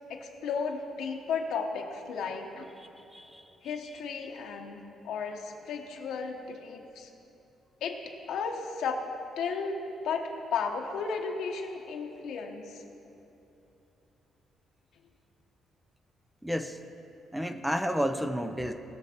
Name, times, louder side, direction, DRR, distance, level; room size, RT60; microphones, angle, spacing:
voice 1, 0.1-2.7 3.6-7.1 7.8-8.0 8.3-9.0 9.4-9.8 10.0-12.8, left 5 dB, 75° left, 2 dB, 1.0 m, -34 dB
voice 2, 3.1-3.4 16.4-16.8 17.3-18.7, equal, 5° right, 8 dB, 0.4 m, -31 dB
19.5 x 6.5 x 4.3 m, 2.9 s
cardioid pair, 155°, 0 cm